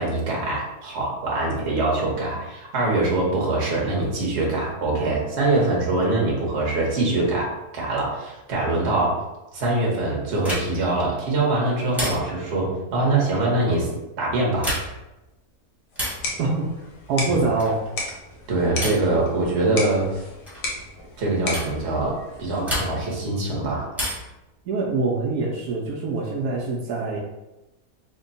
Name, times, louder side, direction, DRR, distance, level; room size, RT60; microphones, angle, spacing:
voice 1, 0.0-9.2 9.5-13.9 14.2-14.7 17.2-17.4 18.5-20.1 21.2-23.9, right 2 dB, 50° right, -3 dB, 1.1 m, -23 dB
sound 1, 10.4-10.9 11.9-12.5 14.5-15.1 15.9-16.3 17.6-17.9 18.8-19.2 20.5-20.7 21.5-21.8 22.7-23.2 23.9-24.4 25.9-26.6, equal, ahead, 0.7 m, -31 dB
sound 2, 15.9-22.9, left 2 dB, 85° left, 1.4 m, -35 dB
voice 2, 17.1-17.8 24.7-27.2, right 3 dB, 75° right, -3 dB, 1.1 m, -24 dB
3.4 x 2.2 x 3.9 m, 0.98 s
omnidirectional pair, 1.7 m